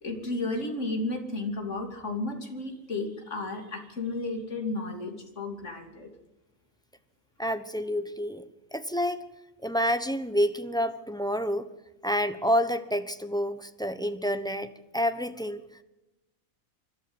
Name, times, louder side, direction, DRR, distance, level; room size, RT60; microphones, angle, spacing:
voice 1, 0.0-6.1, left 2 dB, 55° left, 4 dB, 3.2 m, -33 dB
voice 2, 7.4-8.4 8.7-9.3 9.6-11.7 12.0-14.7 14.9-15.6, equal, 5° left, 10 dB, 0.9 m, -28 dB
25.0 x 13.0 x 8.1 m, 0.96 s
omnidirectional pair, 1.5 m